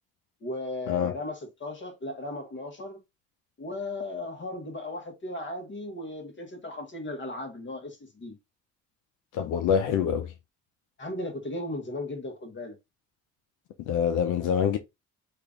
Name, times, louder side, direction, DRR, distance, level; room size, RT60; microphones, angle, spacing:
voice 1, 0.4-3.0 3.6-8.4 11.0-12.7, left 2 dB, 40° left, 1.4 m, -36 dB
voice 2, 9.3-10.3 13.9-14.8, left 7 dB, 85° left, 0.6 m, -25 dB
3.2 x 2.5 x 3.5 m
cardioid pair, 90°, 30 cm